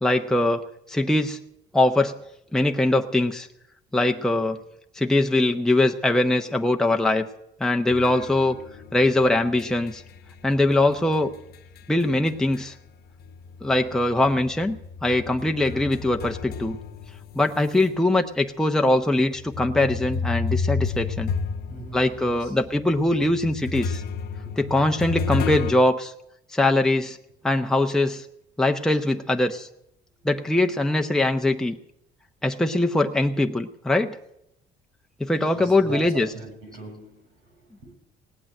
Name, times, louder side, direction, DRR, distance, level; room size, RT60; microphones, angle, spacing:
voice 1, 0.0-1.4 1.7-2.1 2.5-3.5 3.9-4.6 4.9-7.3 7.6-8.6 8.9-10.0 10.4-11.3 11.9-12.7 13.6-14.8 15.0-16.8 17.3-21.3 21.9-24.0 24.6-26.1 26.5-27.2 27.4-28.3 28.6-29.7 30.2-31.8 32.4-34.2 35.2-36.3, left 2 dB, 5° left, 0.8 m, -22 dB
sound 1, 7.9-12.9 13.2-17.9 18.5-18.6 19.3-25.7, left 5 dB, 65° left, 1.0 m, -32 dB
voice 2, 21.7-22.6 24.4-24.5 35.5-37.9, right 4 dB, 90° right, 6.5 m, -41 dB
17.5 x 8.6 x 8.9 m
cardioid pair, 110°, 17 cm